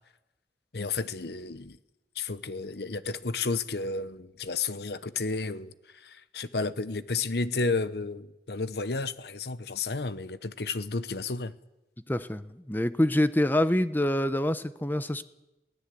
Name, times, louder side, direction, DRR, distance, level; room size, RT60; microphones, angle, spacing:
voice 1, 0.7-1.8 2.2-11.5, left 3 dB, 65° left, 0.9 m, -32 dB
voice 2, 12.1-15.2, left 1 dB, 10° left, 0.8 m, -26 dB
22.0 x 16.5 x 8.4 m
head